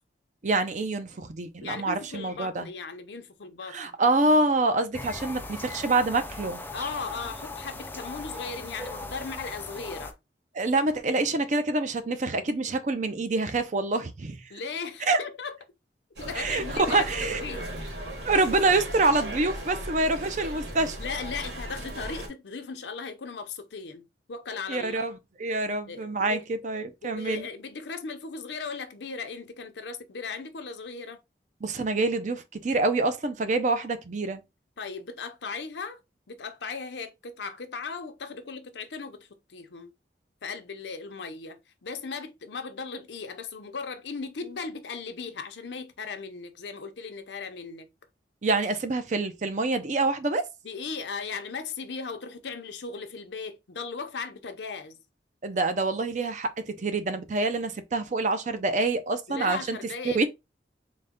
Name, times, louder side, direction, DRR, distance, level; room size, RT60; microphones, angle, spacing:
voice 1, 0.4-2.7 3.7-6.6 10.5-14.4 15.1-15.2 16.4-17.4 18.2-21.0 24.7-27.5 31.6-34.4 48.4-50.5 55.4-59.8 60.0-60.3, right 2 dB, 45° right, 0.5 m, -26 dB
voice 2, 1.6-4.0 6.7-10.2 14.5-15.6 16.2-17.7 21.0-25.0 25.9-26.5 27.0-31.2 34.8-36.0 36.3-39.9 40.4-47.9 50.6-55.0 59.3-60.3, left 4 dB, 80° left, 0.6 m, -37 dB
sound 1, 4.9-10.1, left 2 dB, 10° left, 0.3 m, -39 dB
sound 2, 16.2-22.3, right 1 dB, 80° right, 1.9 m, -36 dB
3.9 x 2.2 x 3.5 m
head